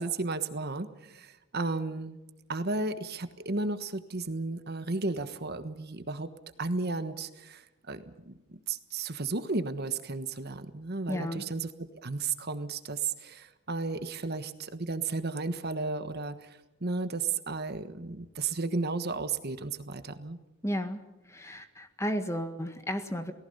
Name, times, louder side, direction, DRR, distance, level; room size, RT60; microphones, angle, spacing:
voice 1, 0.0-2.2 2.5-6.3 6.6-20.4, right 3 dB, 50° right, 10 dB, 1.4 m, -34 dB
voice 2, 11.1-11.4 20.6-21.0 21.3-23.3, equal, 15° left, 8 dB, 1.7 m, -33 dB
29.0 x 18.5 x 5.6 m, 1.0 s
head